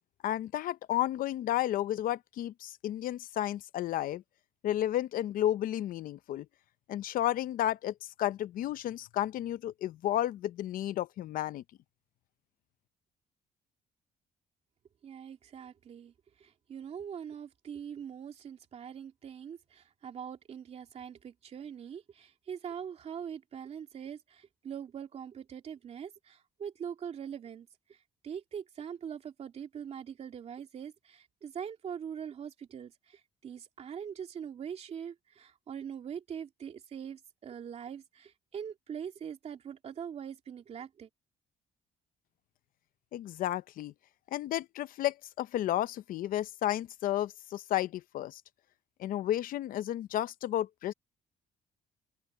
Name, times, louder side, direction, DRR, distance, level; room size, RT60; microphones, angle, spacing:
voice 1, 0.2-4.2 4.6-6.5 6.9-11.6 43.1-43.9 44.3-48.4 49.0-50.9, left 13 dB, 70° left, 0.7 m, -32 dB
voice 2, 15.0-28.0 28.2-41.1, right 8 dB, 45° right, 2.5 m, -43 dB
cardioid pair, 145°, 15 cm